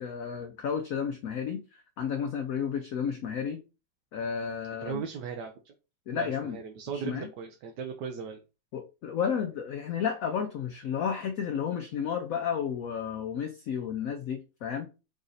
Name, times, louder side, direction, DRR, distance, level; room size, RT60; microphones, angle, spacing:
voice 1, 0.0-3.6 4.1-5.0 6.1-6.6 6.9-7.3 8.7-14.9, left 7 dB, 75° left, 0.7 m, -32 dB
voice 2, 4.8-5.7 6.1-8.4, right 6 dB, 70° right, 1.2 m, -37 dB
5.0 x 2.5 x 4.0 m
omnidirectional pair, 2.0 m